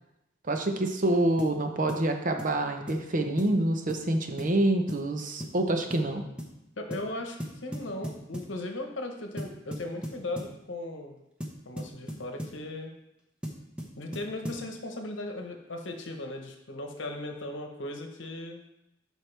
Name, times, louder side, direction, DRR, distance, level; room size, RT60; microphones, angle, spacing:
voice 1, 0.5-6.2, right 1 dB, 45° right, 5 dB, 0.8 m, -27 dB
sound 1, 1.4-1.6 1.9-2.1 2.4-2.6 2.9-3.0 3.4-3.6 3.9-4.1 4.4-4.6 4.9-5.1 5.4-5.6 5.9-6.1 6.4-6.6 6.9-7.1 7.4-8.5 9.4-10.6 11.4-12.6 13.4-14.7, equal, 5° right, 0.9 m, -38 dB
voice 2, 6.8-11.2 11.6-12.9 14.0-18.6, left 2 dB, 65° left, 4 dB, 1.1 m, -37 dB
12.0 x 4.7 x 3.4 m, 0.86 s
head